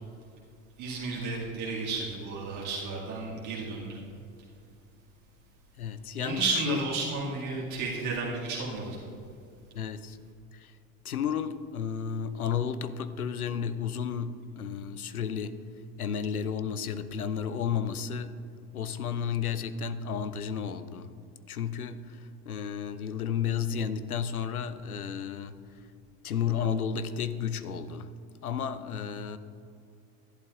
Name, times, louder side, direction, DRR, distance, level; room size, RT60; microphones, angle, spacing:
voice 1, 0.8-4.0 6.2-9.0, right 3 dB, 40° right, -4 dB, 2.1 m, -32 dB
voice 2, 5.8-6.8 9.7-10.2 10.5-10.8 11.0-15.5 16.0-18.3 18.7-21.1 21.5-25.8 26.2-28.1 28.4-29.4, left 7 dB, 85° left, 13 dB, 0.5 m, -32 dB
11.5 x 11.0 x 2.5 m, 2.5 s
figure-of-eight pair, 75°, 43 cm